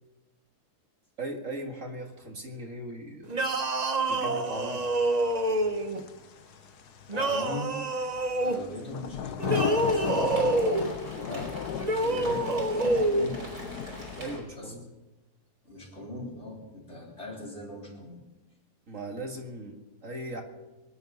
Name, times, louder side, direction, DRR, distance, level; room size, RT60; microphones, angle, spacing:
voice 1, 1.2-3.4 4.1-4.9 14.2-14.9 18.9-20.4, right 1 dB, 50° right, 2 dB, 2.3 m, -38 dB
sound 1, 3.3-6.0 7.1-8.6 9.4-10.9 11.8-13.3, right 2 dB, 30° right, 1.1 m, -27 dB
sound 2, 4.5-14.4, left 10 dB, 80° left, 1.3 m, -36 dB
voice 2, 7.1-7.8 8.4-10.8 11.1-11.6 11.9-13.5 14.6-14.7 15.6-18.2, left 1 dB, 40° left, -2 dB, 4.3 m, -40 dB
Rain, 9.4-14.4, right 1 dB, 80° right, 5.8 m, -44 dB
24.0 x 11.0 x 5.4 m, 1.1 s
omnidirectional pair, 1.7 m